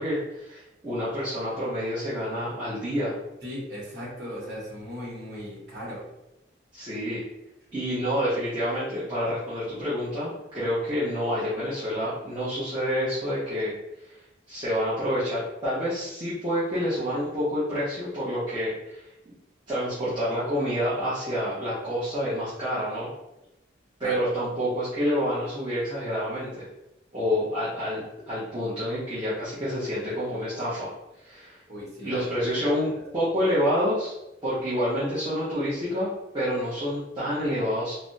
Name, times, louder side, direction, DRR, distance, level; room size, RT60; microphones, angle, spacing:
voice 1, 0.0-3.1 6.7-7.3 7.7-13.7 14.1-14.2 14.5-19.3 19.7-23.1 24.0-26.7 27.1-30.9 31.2-31.6 32.0-34.1 34.4-37.9, equal, 25° right, -12 dB, 0.8 m, -28 dB
voice 2, 3.4-6.0 24.0-24.2 31.7-32.5, equal, 60° right, -7 dB, 1.2 m, -37 dB
3.3 x 2.1 x 2.6 m, 0.92 s
head